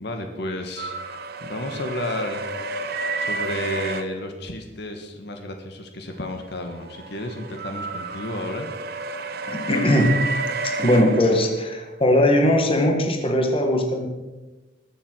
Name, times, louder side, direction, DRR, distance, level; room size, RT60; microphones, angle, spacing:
voice 1, 0.0-8.7, left 1 dB, 60° left, 4 dB, 1.7 m, -32 dB
sound 1, 0.8-4.0 6.4-11.9, right 3 dB, 55° right, 1.0 m, -31 dB
voice 2, 9.5-10.1 10.6-14.1, left 1 dB, 30° left, 3 dB, 1.9 m, -20 dB
21.0 x 7.7 x 6.3 m, 1.2 s
head